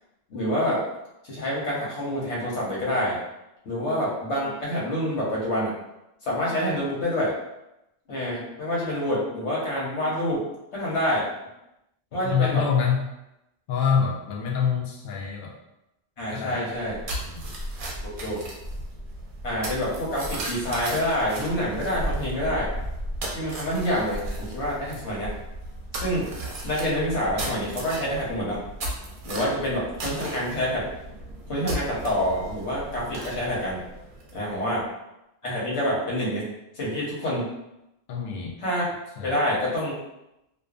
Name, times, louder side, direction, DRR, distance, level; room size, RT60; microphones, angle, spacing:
voice 1, 0.3-0.8 1.2-3.2 3.6-5.7 6.2-7.3 8.1-10.4 10.7-11.3 12.1-12.6 16.2-17.0 18.0-18.4 19.4-22.7 23.3-25.3 26.0-26.3 26.6-28.6 29.2-30.9 31.5-33.8 34.3-34.8 35.4-36.4 36.7-37.5 38.6-38.9 39.2-40.0, equal, 90° left, -6 dB, 1.2 m, -27 dB
voice 2, 12.2-13.1 13.7-15.6 16.3-16.7 17.2-17.5 29.5-29.7 34.5-34.7 38.1-38.6 39.2-39.4, left 6 dB, 60° left, -2 dB, 0.6 m, -26 dB
sound 1, 16.7-34.6, right 1 dB, 60° right, 0.6 m, -35 dB
2.5 x 2.2 x 2.3 m, 0.89 s
omnidirectional pair, 1.1 m